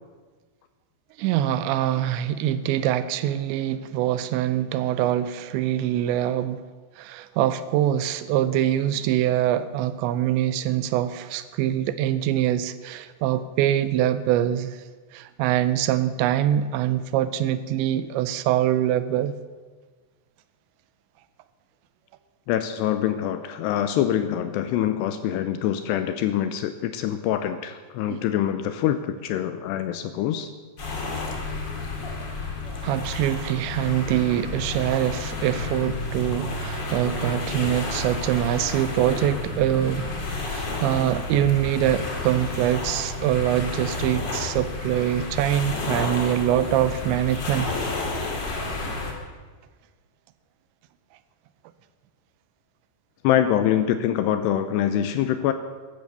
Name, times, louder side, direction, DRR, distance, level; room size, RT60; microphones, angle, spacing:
voice 1, 1.2-6.6 7.0-14.8 15.1-19.3 28.1-28.2 32.8-40.1 40.5-47.8, right 12 dB, 80° right, 13 dB, 2.8 m, -24 dB
voice 2, 22.5-30.5 53.2-55.5, left 10 dB, 80° left, 9 dB, 2.5 m, -24 dB
sound 1, 30.8-49.1, left 3 dB, 35° left, 1.8 m, -31 dB
14.5 x 12.5 x 6.7 m, 1.4 s
omnidirectional pair, 5.4 m